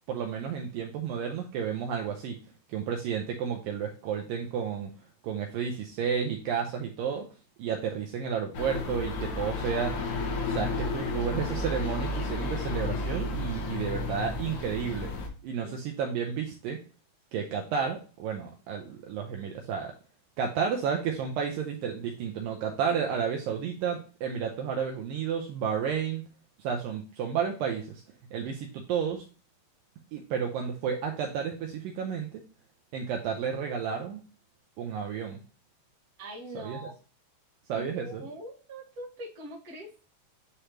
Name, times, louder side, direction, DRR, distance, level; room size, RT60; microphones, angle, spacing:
voice 1, 0.1-2.4 2.7-4.9 5.2-7.3 7.6-10.0 10.4-15.1 15.4-16.8 17.3-19.9 20.4-26.2 26.6-28.0 28.3-29.2 30.1-32.4 32.9-34.2 34.8-35.4 36.6-36.8 37.7-38.2, right 7 dB, 85° right, 2 dB, 2.0 m, -31 dB
sound 1, 8.5-15.3, left 3 dB, 70° left, 1.9 m, -32 dB
voice 2, 36.2-36.9 37.7-39.9, right 1 dB, 45° right, -4 dB, 1.2 m, -43 dB
10.0 x 3.3 x 2.9 m, 0.37 s
omnidirectional pair, 4.7 m